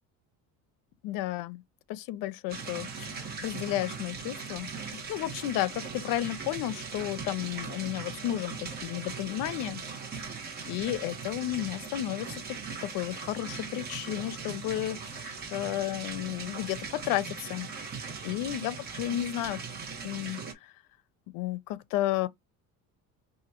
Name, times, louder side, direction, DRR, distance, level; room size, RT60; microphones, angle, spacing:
voice 1, 1.0-1.6 1.9-9.8 10.6-17.7 18.2-19.6 20.0-20.7 21.3-22.3, left 14 dB, 75° left, 0.6 m, -33 dB
sound 1, 2.5-20.5, right 5 dB, 30° right, 1.3 m, -39 dB
5.0 x 2.6 x 2.9 m
cardioid pair, 175°, 34 cm